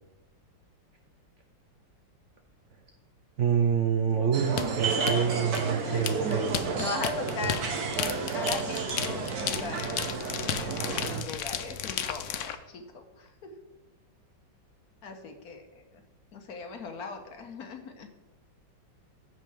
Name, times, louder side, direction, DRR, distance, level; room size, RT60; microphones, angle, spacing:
voice 1, 3.4-6.6, right 7 dB, 80° right, 6 dB, 0.6 m, -26 dB
sound 1, 4.3-11.2, right 4 dB, 55° right, 1.5 m, -31 dB
sound 2, 4.6-12.6, left 9 dB, 90° left, 0.6 m, -33 dB
voice 2, 5.9-6.4 6.7-7.7 8.3-10.0 10.6-13.5 15.0-16.0 16.3-18.1, left 4 dB, 55° left, 5 dB, 1.4 m, -39 dB
14.5 x 5.5 x 3.5 m, 1.0 s
omnidirectional pair, 2.1 m